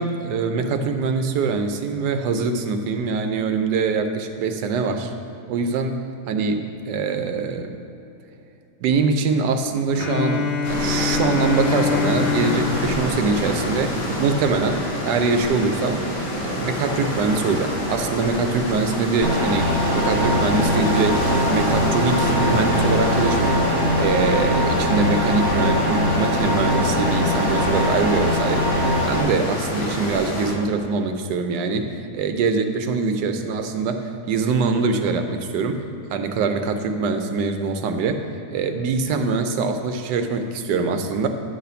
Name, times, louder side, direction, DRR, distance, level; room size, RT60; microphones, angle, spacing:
voice 1, 0.0-5.1 5.5-7.8 8.8-16.1 16.3-23.7 23.9-35.8 36.1-38.2 38.5-41.3, right 4 dB, 85° right, 6 dB, 1.2 m, -23 dB
Bowed string instrument, 9.9-14.0, left 5 dB, 85° left, 0.6 m, -26 dB
sound 1, 10.6-30.5, equal, 60° left, 1.8 m, -27 dB
sound 2, 19.2-29.2, left 1 dB, 15° right, 0.9 m, -22 dB
9.6 x 3.3 x 6.8 m, 2.8 s
omnidirectional pair, 1.8 m